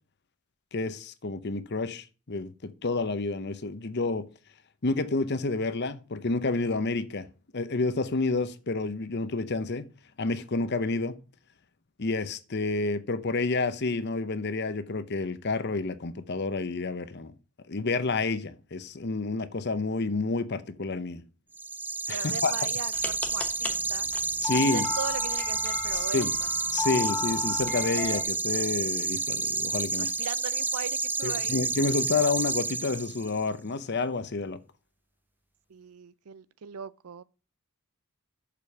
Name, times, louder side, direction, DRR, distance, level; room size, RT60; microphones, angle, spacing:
voice 1, 0.7-4.2 4.8-7.3 7.5-9.9 10.2-11.1 12.0-17.3 17.7-21.2 22.1-22.5 24.4-24.9 25.9-26.3 26.7-30.1 31.2-34.6, left 3 dB, 50° left, 0.7 m, -29 dB
sound 1, 21.5-33.4, right 3 dB, 10° right, 0.3 m, -30 dB
voice 2, 22.1-24.1 24.5-26.5 30.0-31.6 35.7-37.2, right 7 dB, 85° right, 0.5 m, -39 dB
sound 2, 22.9-28.2, left 4 dB, 5° left, 1.0 m, -35 dB
6.8 x 5.2 x 6.3 m
head